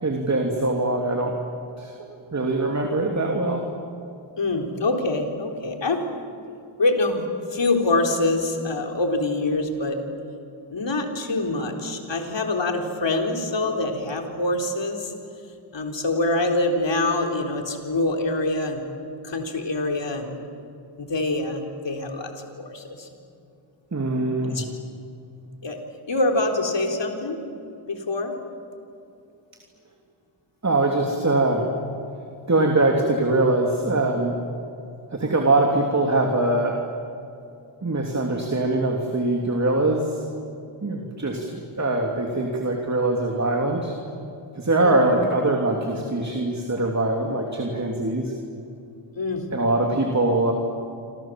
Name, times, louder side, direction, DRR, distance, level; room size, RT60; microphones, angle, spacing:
voice 1, 0.0-1.3 1.8-3.6 23.9-24.6 30.6-31.7 32.5-34.4 35.1-36.8 37.8-40.2 40.8-43.9 44.6-48.3 49.5-50.5, right 2 dB, 35° right, 1 dB, 3.0 m, -23 dB
voice 2, 4.4-6.2 6.8-7.2 7.5-10.0 10.7-15.1 15.7-18.8 19.2-20.4 21.0-23.1 24.5-24.7 25.6-25.8 26.1-27.4 27.9-28.3 44.8-45.2 49.2-49.6, left 2 dB, 65° left, 2 dB, 3.9 m, -25 dB
29.0 x 26.5 x 7.6 m, 2.5 s
wide cardioid pair, 95°, 47 cm